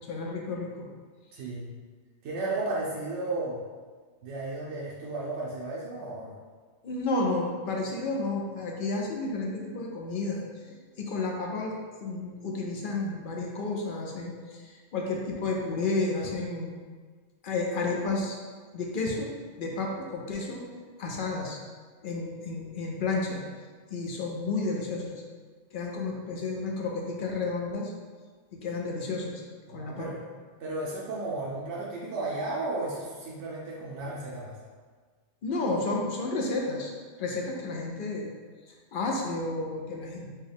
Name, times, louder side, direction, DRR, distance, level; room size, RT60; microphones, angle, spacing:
voice 1, 0.1-0.9 6.8-11.7 12.0-16.8 17.4-18.4 18.7-19.3 19.6-20.6 21.0-21.6 22.0-23.4 23.9-25.1 25.7-27.9 28.5-29.4 29.7-30.2 35.4-36.9 37.2-38.3 38.7-40.3, left 3 dB, 55° left, -1 dB, 0.6 m, -31 dB
voice 2, 1.3-1.7 2.2-3.6 4.2-6.4 29.7-30.2 30.6-34.6, right 2 dB, 80° right, -6 dB, 0.9 m, -34 dB
4.5 x 2.3 x 3.4 m, 1.5 s
omnidirectional pair, 1.2 m